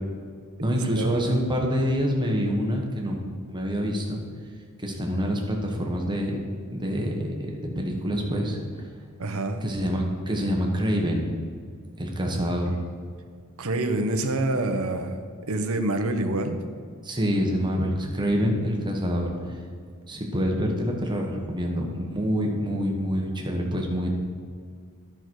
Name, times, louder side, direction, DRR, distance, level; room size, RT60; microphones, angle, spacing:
voice 1, 0.6-3.2 3.5-4.2 4.8-6.4 6.6-8.6 9.6-11.3 12.0-12.8 17.0-19.6 20.1-24.1, equal, 20° right, 0 dB, 1.3 m, -26 dB
voice 2, 9.2-9.6 13.6-15.2 15.5-16.6, right 2 dB, 70° right, 7 dB, 0.9 m, -26 dB
11.0 x 6.0 x 4.7 m, 2.1 s
head